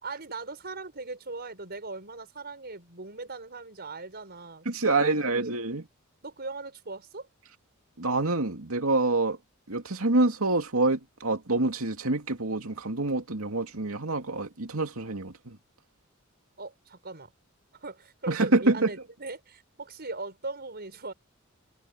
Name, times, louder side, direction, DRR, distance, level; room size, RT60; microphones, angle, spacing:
voice 1, 0.0-5.5 6.2-7.3 16.6-17.3 17.7-21.1, right 3 dB, 50° right, 5.7 m, -39 dB
voice 2, 4.7-5.8 8.0-9.4 9.7-15.6 18.3-18.9, right 2 dB, 85° right, 2.6 m, -26 dB
head